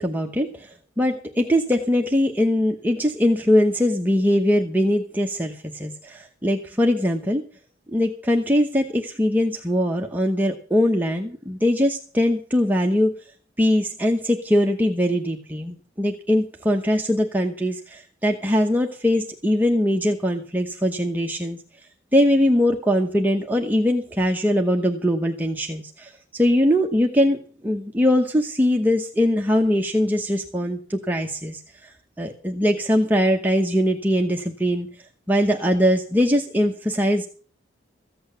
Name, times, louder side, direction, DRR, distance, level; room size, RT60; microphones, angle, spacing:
voice 1, 0.0-7.4 7.9-13.1 13.6-21.6 22.1-27.4 27.6-34.9 35.3-37.3, equal, 10° right, 1 dB, 0.9 m, -21 dB
15.0 x 8.7 x 6.8 m, 0.41 s
head